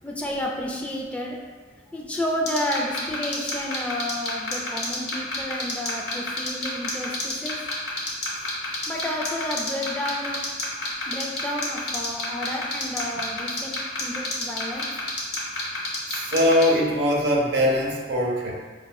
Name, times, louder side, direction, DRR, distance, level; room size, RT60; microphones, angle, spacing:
voice 1, 0.0-1.4 1.9-7.6 8.9-10.4 11.1-13.7 14.0-14.9, left 1 dB, 5° left, -2 dB, 0.3 m, -31 dB
sound 1, 2.5-16.6, left 3 dB, 70° left, 1.0 m, -28 dB
voice 2, 16.1-18.5, equal, 65° right, -2 dB, 0.6 m, -21 dB
5.1 x 2.4 x 2.3 m, 1.4 s
head